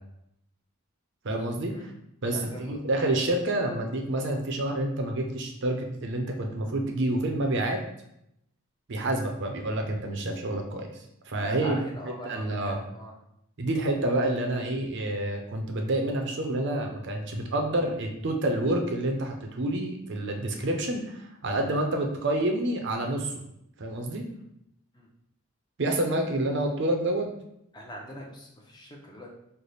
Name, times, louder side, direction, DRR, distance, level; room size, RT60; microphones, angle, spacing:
voice 1, 1.2-1.7 2.2-7.8 8.9-10.9 11.3-11.8 12.3-12.8 13.6-23.3 23.8-24.2 25.8-27.3, right 1 dB, 55° right, 3 dB, 0.6 m, -28 dB
voice 2, 2.3-2.8 11.4-13.1 24.3-24.4 24.9-25.1 27.7-29.3, equal, 20° left, -1 dB, 0.5 m, -41 dB
3.3 x 2.1 x 4.0 m, 0.78 s
head